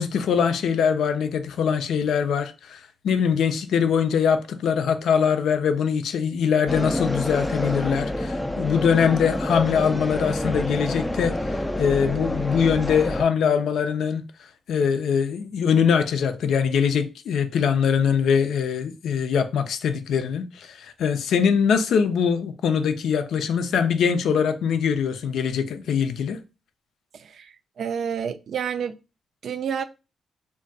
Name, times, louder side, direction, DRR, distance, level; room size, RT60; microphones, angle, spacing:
voice 1, 0.0-11.4 11.8-14.3 14.7-26.4, left 7 dB, 80° left, 0.4 m, -22 dB
sound 1, 6.7-13.2, left 1 dB, 10° left, 0.3 m, -28 dB
voice 2, 27.1-29.0 29.4-29.8, right 7 dB, 70° right, 0.3 m, -29 dB
2.4 x 2.2 x 3.9 m
cardioid pair, 80°, 0 cm